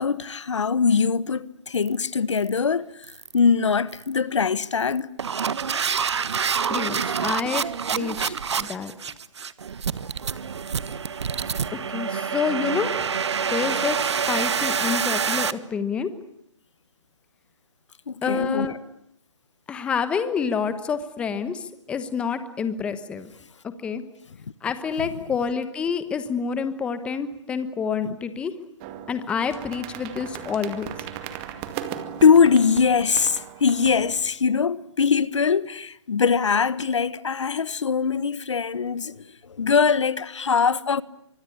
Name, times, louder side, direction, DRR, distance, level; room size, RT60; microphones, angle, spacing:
voice 1, 0.0-3.1 3.3-5.1 18.1-18.7 32.2-41.0, left 6 dB, 70° left, 1.4 m, -22 dB
sound 1, 1.7-1.9 2.3-2.6 3.0-3.4 3.9-4.2 4.8-15.5, right 6 dB, 65° right, 1.5 m, -27 dB
voice 2, 6.7-7.6 7.9-8.9 11.7-13.0 13.5-16.1 18.2-18.8 19.7-23.3 23.8-24.0 24.6-28.5 29.1-30.9, left 6 dB, 5° left, 1.1 m, -28 dB
sound 2, 28.8-34.3, right 9 dB, 20° right, 2.1 m, -37 dB
25.0 x 22.5 x 9.9 m
hypercardioid pair, 160°, 16 cm